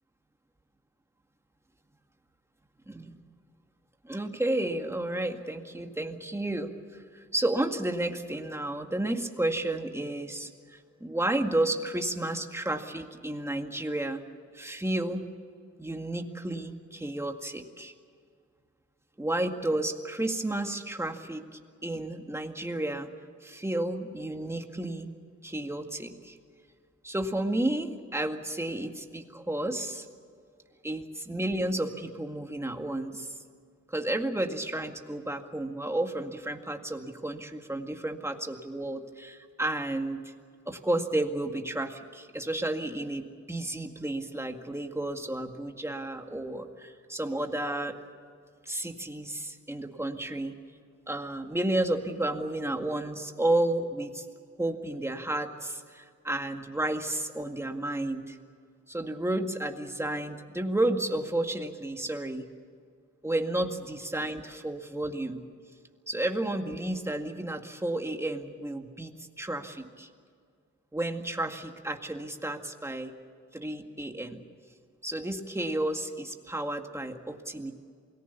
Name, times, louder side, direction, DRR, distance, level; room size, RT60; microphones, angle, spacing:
voice 1, 4.0-14.2 14.5-15.3 15.8-17.9 19.2-23.1 23.4-25.1 25.4-26.4 27.0-30.1 30.8-33.3 33.9-40.3 40.7-48.0 48.7-50.5 51.1-54.3 54.6-58.4 58.9-62.5 63.2-65.4 66.1-70.1 70.9-73.2 73.5-74.4 75.0-77.7, right 1 dB, 10° right, 4 dB, 2.0 m, -32 dB
28.0 x 19.5 x 7.1 m, 2.1 s
wide cardioid pair, 110°, 29 cm